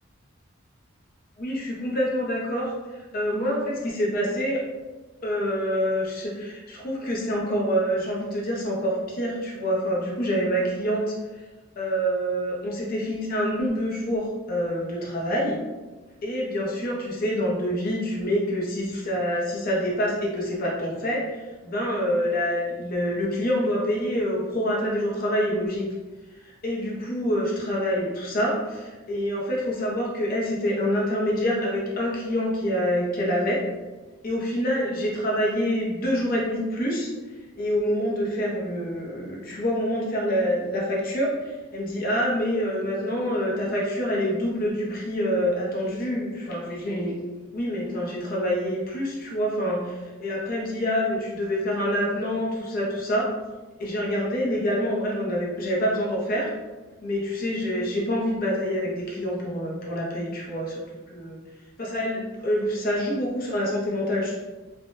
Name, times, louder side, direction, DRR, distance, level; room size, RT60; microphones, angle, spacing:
voice 1, 1.4-4.6 5.2-11.1 11.8-15.6 16.2-25.9 26.4-33.6 34.2-37.1 37.6-47.1 47.5-53.3 53.8-56.5 57.0-61.4 61.8-64.4, equal, 45° left, -3 dB, 0.7 m, -26 dB
3.4 x 2.2 x 2.6 m, 1.2 s
head